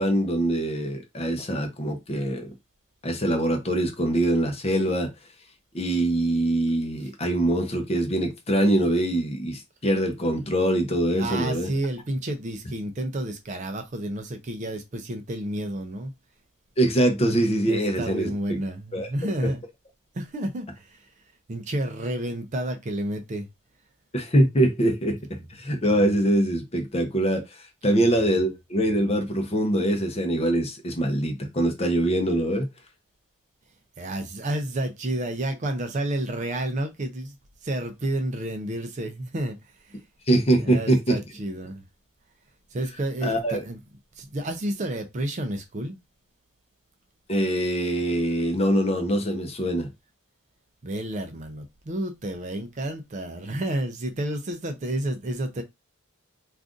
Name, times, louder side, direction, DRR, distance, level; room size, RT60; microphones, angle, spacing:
voice 1, 0.0-2.5 3.0-5.1 5.7-11.7 16.8-18.6 18.9-19.1 24.1-25.2 25.5-27.4 27.8-32.7 40.3-41.2 43.2-43.6 47.3-49.9, right 1 dB, 30° left, 0.7 m, -23 dB
voice 2, 11.1-16.1 17.7-19.6 20.1-21.1 21.5-23.5 25.4-25.5 28.3-28.5 34.0-37.4 37.6-40.0 40.6-41.8 42.7-43.8 44.2-46.0 50.8-55.6, right 1 dB, 35° right, 0.4 m, -30 dB
2.5 x 2.4 x 3.6 m
head